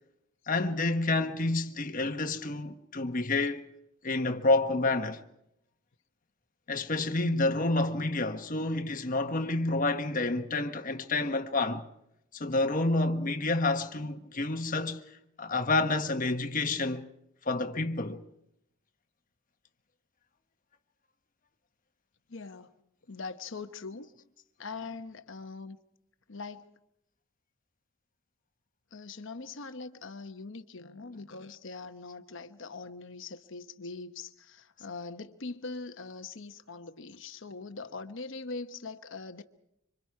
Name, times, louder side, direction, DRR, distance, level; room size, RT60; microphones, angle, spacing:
voice 1, 0.5-3.6 4.0-5.2 6.7-11.8 12.4-15.0 15.4-17.1 17.5-18.2, left 2 dB, 40° left, 1.2 m, -29 dB
voice 2, 22.3-22.7 23.1-24.1 24.6-25.8 26.3-26.7 28.9-39.4, left 3 dB, 60° left, 1.0 m, -42 dB
26.0 x 25.5 x 4.8 m
head